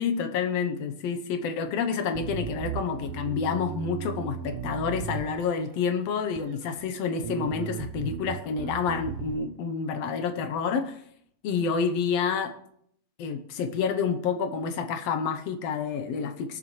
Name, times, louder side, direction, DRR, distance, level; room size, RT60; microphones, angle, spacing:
voice 1, 0.0-11.0 11.4-12.5 13.2-16.6, left 6 dB, 65° left, 8 dB, 1.8 m, -29 dB
Bass guitar, 2.1-5.7 6.3-6.9 7.2-9.3, right 9 dB, 80° right, 1.3 m, -36 dB
20.5 x 6.9 x 3.1 m, 0.69 s
omnidirectional pair, 3.5 m